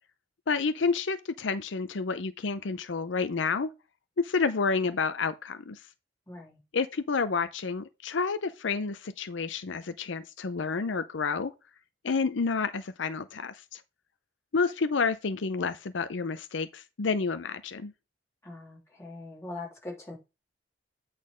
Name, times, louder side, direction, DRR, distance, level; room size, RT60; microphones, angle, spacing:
voice 1, 0.5-3.7 4.2-5.8 6.7-11.5 12.0-13.8 14.5-17.9, left 4 dB, 80° left, 0.6 m, -29 dB
voice 2, 6.3-6.6 18.4-20.2, left 2 dB, 15° left, 3.1 m, -41 dB
8.6 x 4.1 x 5.0 m
head